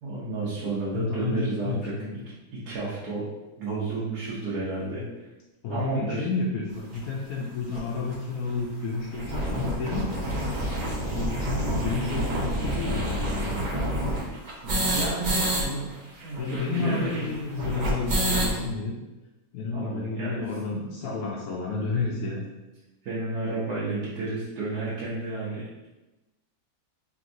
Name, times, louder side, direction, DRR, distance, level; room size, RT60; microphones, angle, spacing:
voice 1, 0.0-2.2 2.5-3.2 3.6-5.0 5.7-6.3 14.6-15.9 16.2-17.2 19.7-20.4 23.0-25.9, right 2 dB, 80° right, -8 dB, 1.5 m, -31 dB
voice 2, 0.9-2.2 5.6-10.1 11.1-13.6 16.4-18.9 19.5-22.4, left 4 dB, 70° left, -4 dB, 1.0 m, -31 dB
sound 1, 6.9-7.0 7.7-7.8 8.1-8.2 8.5-8.6 8.9-15.6 15.9-16.0 16.2-18.6, right 1 dB, 40° right, 0.7 m, -28 dB
4.6 x 3.5 x 2.6 m, 1.1 s
omnidirectional pair, 1.7 m